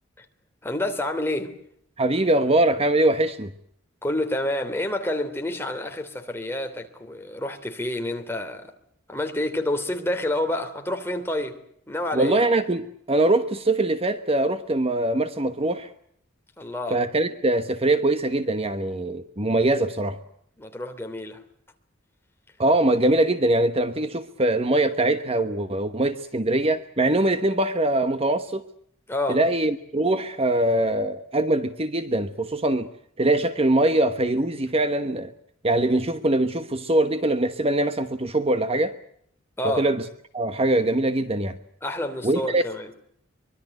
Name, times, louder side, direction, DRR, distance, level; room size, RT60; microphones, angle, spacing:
voice 1, 0.6-1.6 4.0-8.7 9.1-12.4 16.6-17.0 20.6-21.4 29.1-29.4 39.6-39.9 41.8-42.9, left 1 dB, 10° left, 3.0 m, -28 dB
voice 2, 2.0-3.5 12.1-15.9 16.9-20.2 22.6-28.7 29.3-32.9 33.2-35.3 35.6-39.0 39.6-40.0 40.3-41.6 42.2-42.6, right 2 dB, 30° right, 1.1 m, -22 dB
24.5 x 22.5 x 7.8 m
head